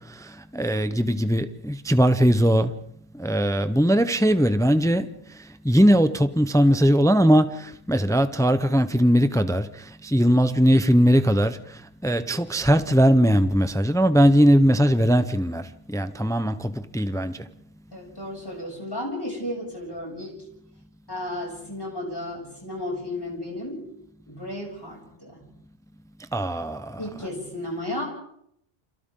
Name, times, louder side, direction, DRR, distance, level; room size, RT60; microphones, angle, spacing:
voice 1, 0.5-2.7 3.2-5.1 5.6-9.7 10.0-11.6 12.0-17.4 26.3-27.0, equal, 5° left, 0.7 m, -20 dB
voice 2, 17.9-20.4 21.1-23.9 24.3-25.4 27.0-28.0, left 1 dB, 20° left, 7.1 m, -33 dB
29.5 x 27.5 x 3.8 m
omnidirectional pair, 1.0 m